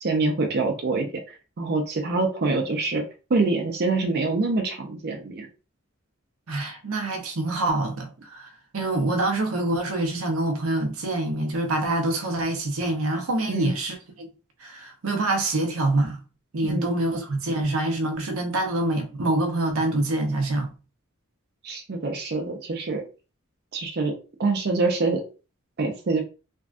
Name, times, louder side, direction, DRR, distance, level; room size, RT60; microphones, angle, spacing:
voice 1, 0.0-3.0 3.3-5.5 13.5-13.7 16.6-16.9 21.6-23.0 23.7-24.1 24.4-25.2 25.8-26.2, right 3 dB, 50° right, 0.5 m, -25 dB
voice 2, 6.5-8.5 8.7-14.3 14.6-16.2 16.5-20.7, right 2 dB, 85° right, 0.7 m, -26 dB
3.4 x 2.2 x 2.5 m
head